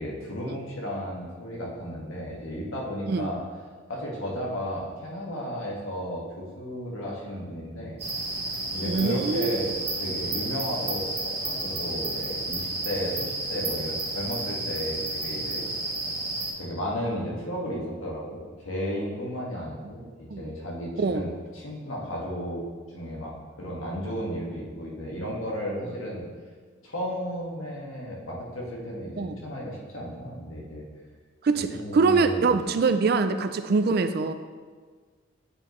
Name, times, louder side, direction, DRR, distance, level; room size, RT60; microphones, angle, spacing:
voice 1, 0.0-3.4 3.9-8.0 8.7-9.7 10.0-15.6 16.5-22.6 22.9-26.2 26.8-30.8 31.7-32.5, equal, 85° left, -4 dB, 1.6 m, -34 dB
sound 1, 8.0-16.5, right 2 dB, 30° right, 1.5 m, -31 dB
voice 2, 8.9-9.6 19.8-19.9 20.3-20.5 21.0-21.3 29.2-29.4 31.4-34.3, right 4 dB, 50° right, 10 dB, 0.3 m, -24 dB
8.7 x 4.9 x 3.1 m, 1.5 s
head